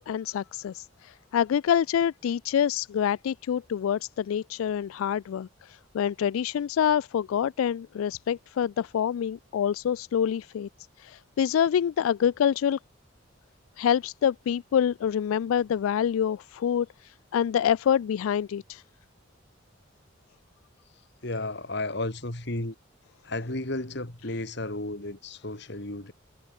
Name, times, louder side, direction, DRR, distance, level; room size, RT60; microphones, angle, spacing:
voice 1, 0.0-10.7 11.0-12.8 13.8-18.8, left 8 dB, 90° left, 0.3 m, -26 dB
voice 2, 21.2-22.7 23.2-26.1, left 2 dB, 55° left, 2.9 m, -33 dB
head